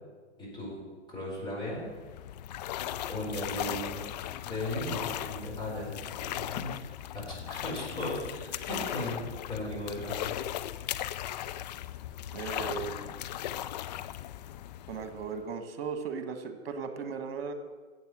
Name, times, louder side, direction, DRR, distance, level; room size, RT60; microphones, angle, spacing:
voice 1, 0.4-0.8 1.1-1.8 3.1-4.0 4.4-9.2 9.5-10.4, left 1 dB, 15° left, -5 dB, 4.9 m, -37 dB
sound 1, 1.8-15.5, left 12 dB, 40° left, 0.5 m, -38 dB
voice 2, 12.3-13.2 14.9-17.5, right 5 dB, 55° right, 8 dB, 1.7 m, -37 dB
14.5 x 8.1 x 6.2 m, 1.4 s
figure-of-eight pair, 120°, 35 cm